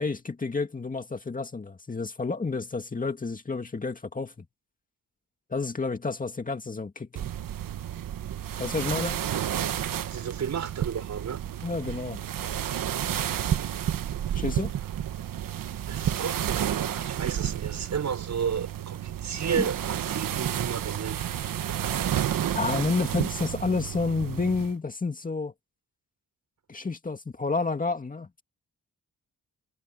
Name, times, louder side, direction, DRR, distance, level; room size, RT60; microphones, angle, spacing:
voice 1, 0.0-4.3 5.5-7.2 8.6-9.2 11.6-12.2 14.3-14.7 19.6-19.7 22.5-25.5 26.7-28.3, left 4 dB, 25° left, 2.2 m, -30 dB
sound 1, 7.2-24.7, right 10 dB, 85° right, 1.3 m, -31 dB
voice 2, 10.1-11.4 14.3-14.4 15.9-21.2 22.7-22.8, right 7 dB, 60° right, 6.1 m, -33 dB
wide cardioid pair, 140°, 32 cm